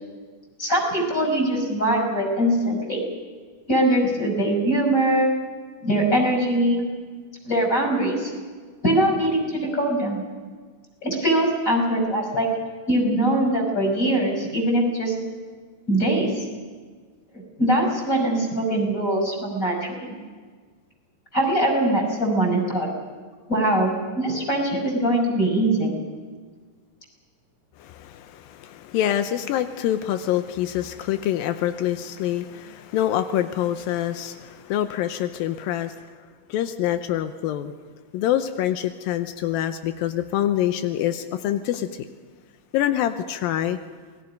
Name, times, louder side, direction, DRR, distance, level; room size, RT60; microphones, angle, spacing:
voice 1, 0.6-3.0 3.7-5.4 5.8-6.8 7.5-8.3 8.8-10.2 11.0-12.5 12.9-15.1 15.9-16.4 17.3-20.2 21.3-22.9 23.5-25.9, right 1 dB, 20° left, 2 dB, 5.9 m, -22 dB
voice 2, 27.8-36.0 36.5-37.7 38.1-41.9 42.7-43.8, left 11 dB, 85° left, 9 dB, 2.6 m, -25 dB
28.5 x 20.5 x 5.3 m, 1.6 s
omnidirectional pair, 4.1 m